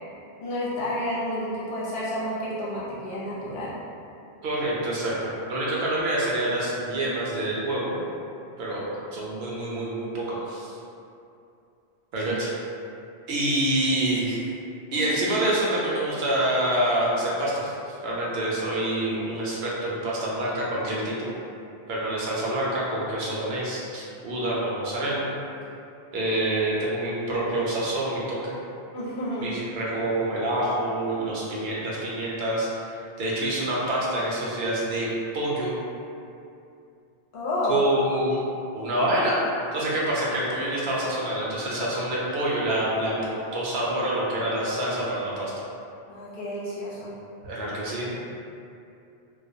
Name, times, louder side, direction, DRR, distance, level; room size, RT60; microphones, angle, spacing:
voice 1, 0.4-3.8 12.2-12.3 14.9-15.1 28.9-29.5 37.3-37.8 46.1-47.1, left 1 dB, 60° left, -9 dB, 0.7 m, -30 dB
voice 2, 4.4-7.9 8.6-10.8 12.1-12.5 13.3-14.5 14.9-17.7 18.0-21.3 21.9-25.2 26.1-28.6 29.4-32.7 33.2-35.1 35.3-35.7 37.7-38.4 38.7-39.4 39.7-45.5 47.4-48.1, right 1 dB, 75° right, -6 dB, 0.8 m, -27 dB
2.3 x 2.0 x 2.6 m, 2.6 s
omnidirectional pair, 1.1 m